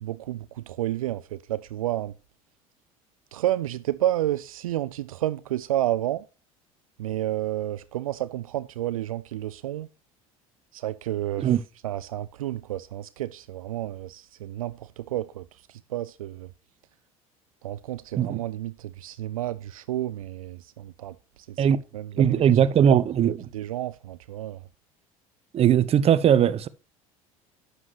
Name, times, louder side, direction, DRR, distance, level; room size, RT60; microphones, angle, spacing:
voice 1, 0.0-2.1 3.3-6.2 7.0-9.9 10.7-16.5 17.6-21.2 21.5-21.6 21.9-22.4 22.9-24.6, right 13 dB, 70° right, 0.4 m, -31 dB
voice 2, 22.2-23.3 25.5-26.7, right 9 dB, 35° right, 0.8 m, -19 dB
12.0 x 8.0 x 2.8 m
figure-of-eight pair, 65°, 18 cm